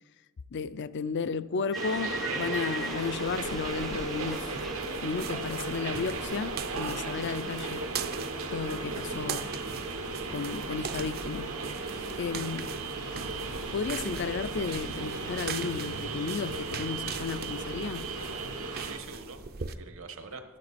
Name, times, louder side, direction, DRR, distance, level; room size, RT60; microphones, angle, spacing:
voice 1, 0.5-4.6 5.0-7.8 8.5-9.5 10.3-11.5 12.2-12.7 13.7-18.1, left 5 dB, 55° left, 0.4 m, -33 dB
sound 1, 1.7-5.7 5.9-7.8, equal, ahead, 0.5 m, -41 dB
sound 2, 1.7-19.0, right 3 dB, 85° right, 1.4 m, -35 dB
sound 3, 3.3-19.7, right 6 dB, 45° right, 0.6 m, -41 dB
voice 2, 18.8-20.4, right 4 dB, 65° right, 1.2 m, -46 dB
12.5 x 9.7 x 4.2 m
head